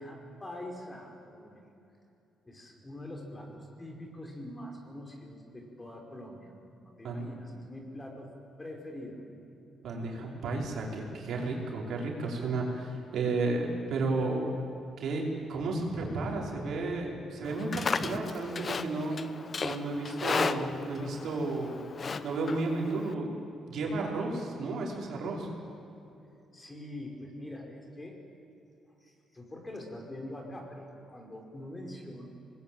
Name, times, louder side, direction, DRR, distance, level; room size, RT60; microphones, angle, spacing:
voice 1, 0.0-1.7 2.5-6.5 6.8-8.3 8.6-9.3 26.5-28.2 29.0-32.3, left 1 dB, 20° left, 2 dB, 5.3 m, -44 dB
voice 2, 9.8-14.4 15.0-19.1 19.6-21.8 22.2-23.3 23.7-25.5, right 3 dB, 70° right, -1 dB, 5.1 m, -32 dB
Livestock farm animals working animals, 17.5-23.1, left 5 dB, 40° left, 1.0 m, -35 dB
24.0 x 20.5 x 9.1 m, 2.8 s
cardioid pair, 90°, 0 cm